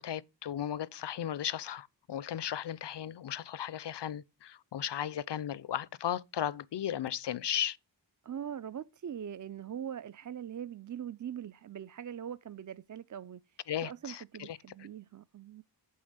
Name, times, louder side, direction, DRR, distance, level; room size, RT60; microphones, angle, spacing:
voice 1, 0.0-7.8 13.7-14.6, left 10 dB, 70° left, 0.6 m, -36 dB
voice 2, 8.2-15.6, right 9 dB, 45° right, 0.5 m, -42 dB
8.2 x 5.6 x 6.4 m
wide cardioid pair, 70°, 43 cm